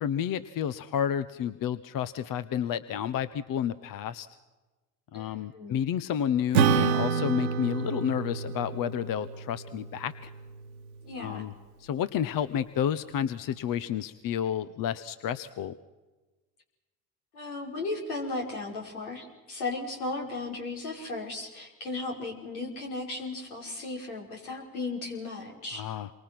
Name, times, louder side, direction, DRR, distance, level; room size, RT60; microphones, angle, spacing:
voice 1, 0.0-4.3 5.1-10.3 11.2-11.5 11.8-15.7 25.7-26.1, left 9 dB, 50° left, 14 dB, 1.0 m, -30 dB
voice 2, 5.1-5.8 11.0-11.5 17.3-25.8, left 3 dB, 85° left, 0 dB, 5.3 m, -36 dB
Acoustic guitar / Strum, 6.5-11.3, right 6 dB, 85° right, 1.3 m, -29 dB
27.5 x 24.0 x 6.1 m, 1.2 s
hypercardioid pair, 65°, 43 cm